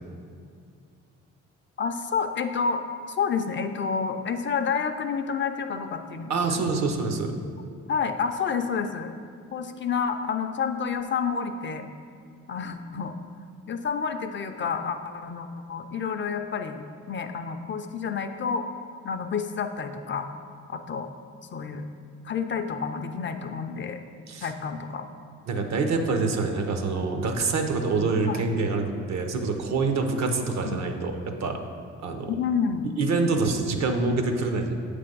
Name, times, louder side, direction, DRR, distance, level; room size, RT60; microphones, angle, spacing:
voice 1, 1.8-6.7 7.9-9.1 9.5-11.9 12.5-13.2 13.7-18.7 19.0-20.3 20.7-21.1 21.5-21.9 22.2-24.0 24.4-25.1 28.3-28.5 30.6-30.8 32.3-32.9, left 6 dB, 40° left, 7 dB, 0.4 m, -29 dB
voice 2, 6.3-7.3 24.3-24.5 25.5-31.6 32.0-32.3 33.0-34.7, right 3 dB, 65° right, 5 dB, 0.8 m, -26 dB
7.4 x 3.3 x 5.3 m, 2.3 s
cardioid pair, 90°, 30 cm